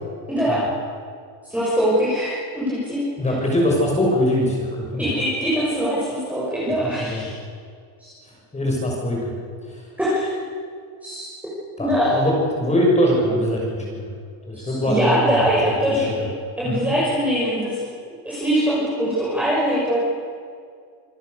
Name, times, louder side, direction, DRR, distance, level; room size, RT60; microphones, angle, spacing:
voice 1, 0.3-0.6 1.4-3.3 5.0-7.3 8.0-8.1 10.0-10.3 11.0-11.3 11.8-12.2 14.5-16.2 16.6-17.8 18.2-20.0, equal, 5° right, -8 dB, 6.4 m, -22 dB
voice 2, 3.2-5.0 7.1-7.2 8.5-9.3 11.8-14.1 14.5-15.4 15.8-16.2 16.6-16.8, left 1 dB, 15° left, -2 dB, 6.3 m, -22 dB
27.5 x 18.5 x 6.7 m, 2.2 s
cardioid pair, 150°, 49 cm